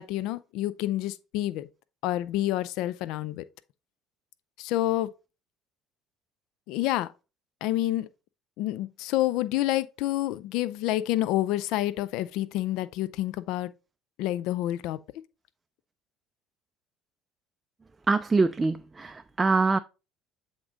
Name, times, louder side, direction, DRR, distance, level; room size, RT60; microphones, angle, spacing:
voice 1, 0.0-1.7 2.0-3.4 4.6-5.1 6.7-7.1 7.6-8.1 8.6-13.7 14.2-15.0, left 15 dB, 65° left, 0.3 m, -28 dB
voice 2, 18.1-19.8, right 3 dB, 20° right, 0.3 m, -24 dB
7.7 x 3.7 x 3.7 m
hypercardioid pair, 65°, 0 cm